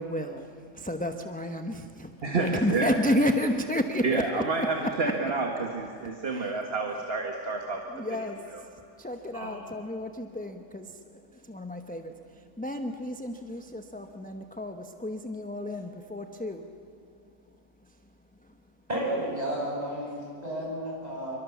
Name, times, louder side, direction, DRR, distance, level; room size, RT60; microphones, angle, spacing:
voice 1, 0.0-4.9 6.3-6.5 7.9-16.7 17.8-18.0 18.4-18.6, left 1 dB, 5° left, 5 dB, 0.9 m, -32 dB
voice 2, 2.2-3.0 4.0-8.6 9.3-9.6, right 3 dB, 55° right, 2 dB, 1.9 m, -30 dB
voice 3, 18.9-21.4, right 1 dB, 35° right, -4 dB, 8.2 m, -32 dB
27.5 x 23.5 x 7.3 m, 2.5 s
omnidirectional pair, 1.3 m